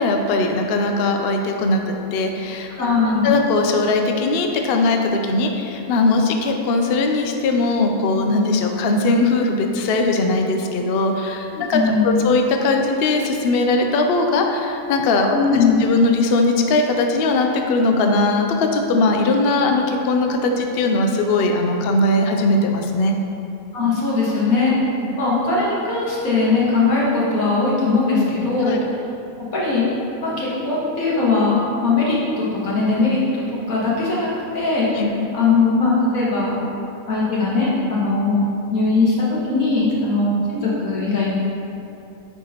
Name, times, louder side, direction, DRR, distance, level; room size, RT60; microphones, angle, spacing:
voice 1, 0.0-2.7 3.2-11.8 12.0-15.4 15.8-23.2 25.0-25.1 28.6-28.8 34.9-35.1, left 2 dB, 65° left, 3 dB, 0.6 m, -19 dB
voice 2, 2.8-3.4 11.5-12.2 15.3-15.8 23.7-24.8 25.2-29.0 29.5-29.9 30.2-34.9 35.3-36.6 37.1-38.4 38.7-41.3, left 3 dB, 80° left, -6 dB, 1.9 m, -20 dB
8.9 x 4.6 x 2.9 m, 2.7 s
omnidirectional pair, 1.4 m